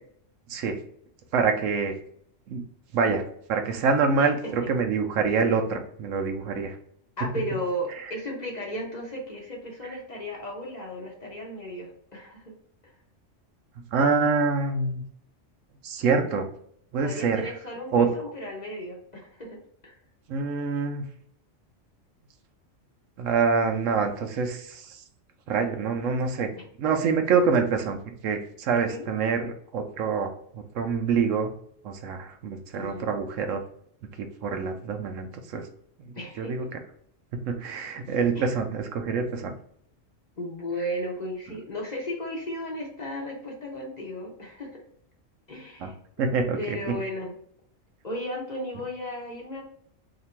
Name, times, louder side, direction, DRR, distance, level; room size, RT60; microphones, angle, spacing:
voice 1, 1.3-1.9 2.5-2.6 2.9-3.2 3.5-6.8 13.9-15.0 15.8-16.5 16.9-17.5 17.9-18.1 20.3-21.0 23.2-25.0 25.5-26.5 26.8-28.0 28.2-31.5 31.8-33.6 34.2-35.7 36.4-36.7 37.3-39.5 45.8-45.9 46.2-46.8, right 5 dB, 80° right, 5 dB, 1.0 m, -26 dB
voice 2, 4.2-4.5 7.2-12.5 12.8-12.9 17.0-19.6 19.8-20.0 28.9-29.1 32.7-33.1 36.1-36.5 38.4-38.5 40.4-44.8 45.5-46.0 46.6-47.4 48.0-49.6, equal, 40° left, -2 dB, 0.8 m, -35 dB
2.9 x 2.6 x 4.3 m, 0.66 s
omnidirectional pair, 1.3 m